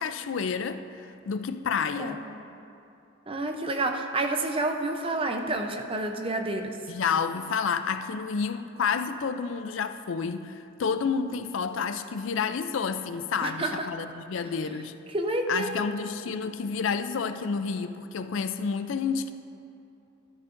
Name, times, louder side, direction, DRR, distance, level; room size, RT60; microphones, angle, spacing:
voice 1, 0.0-2.2 6.9-14.9 15.5-19.3, left 5 dB, 70° left, 10 dB, 0.4 m, -30 dB
voice 2, 3.3-6.8 13.4-13.7 15.1-15.8, right 2 dB, 25° right, 4 dB, 0.6 m, -29 dB
13.0 x 13.0 x 2.6 m, 2.7 s
head